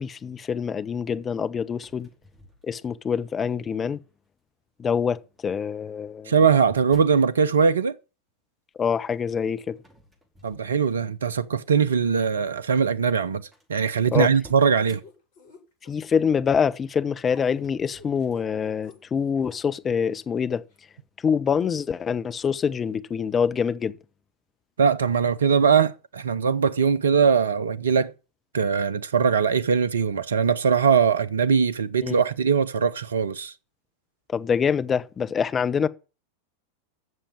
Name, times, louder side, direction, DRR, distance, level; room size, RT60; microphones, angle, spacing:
voice 1, 0.0-2.1 2.6-4.0 4.8-6.3 8.8-9.8 14.1-14.3 15.9-20.6 21.2-23.9 32.0-32.1 34.3-35.9, left 6 dB, 20° left, 0.9 m, -25 dB
sound 1, 1.7-3.2 3.8-4.3 5.4-7.3 9.7-11.3 11.8-12.0 12.8-12.9 13.1-13.2 13.5-15.0 17.1-18.4, left 1 dB, 15° right, 5.0 m, -52 dB
voice 2, 6.3-8.0 10.4-15.0 24.8-28.1 28.5-33.5, right 6 dB, 65° right, 0.8 m, -21 dB
sound 2, 15.0-16.2 17.3-19.5 20.0-20.1 20.7-20.8, left 4 dB, 50° left, 7.5 m, -49 dB
12.5 x 7.2 x 8.8 m
figure-of-eight pair, 90°, 0 cm